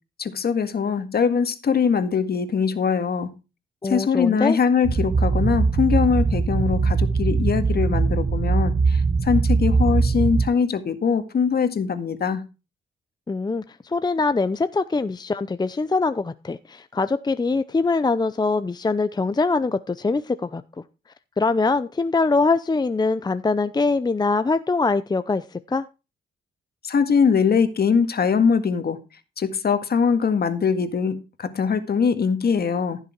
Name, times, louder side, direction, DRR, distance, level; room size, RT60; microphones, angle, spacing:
voice 1, 0.2-3.3 3.8-12.5 26.8-29.0 29.4-33.0, left 6 dB, 55° left, 9 dB, 1.8 m, -22 dB
voice 2, 3.8-4.6 13.3-20.6 21.4-25.8, left 3 dB, 20° left, 12 dB, 0.6 m, -23 dB
sound 1, 4.8-10.5, right 4 dB, 45° right, 1.3 m, -21 dB
15.5 x 6.8 x 4.6 m, 0.29 s
cardioid pair, 85°, 19 cm